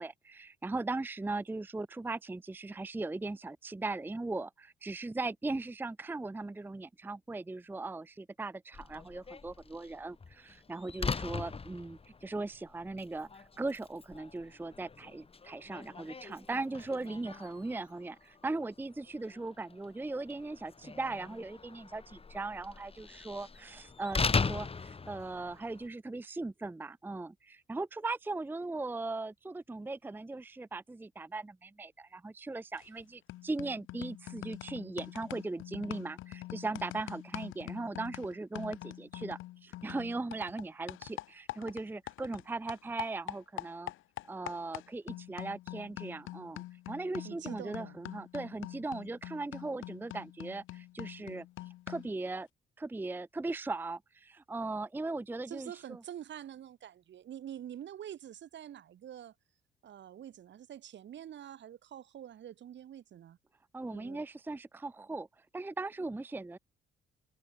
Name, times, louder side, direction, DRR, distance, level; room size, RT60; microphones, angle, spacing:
voice 1, 0.0-43.9 44.3-51.5 51.9-52.5 52.8-56.0 63.7-65.3 65.5-66.6, right 3 dB, 10° right, 0.5 m, -39 dB
Slam, 8.7-25.9, left 4 dB, 30° left, 2.0 m, -40 dB
sound 1, 32.8-33.0 33.3-42.4 42.7-52.2, left 16 dB, 90° left, 1.7 m, -45 dB
voice 2, 47.2-48.0 55.5-59.3 59.8-63.4 63.9-64.2, right 10 dB, 65° right, 3.0 m, -46 dB
cardioid pair, 90°, 20 cm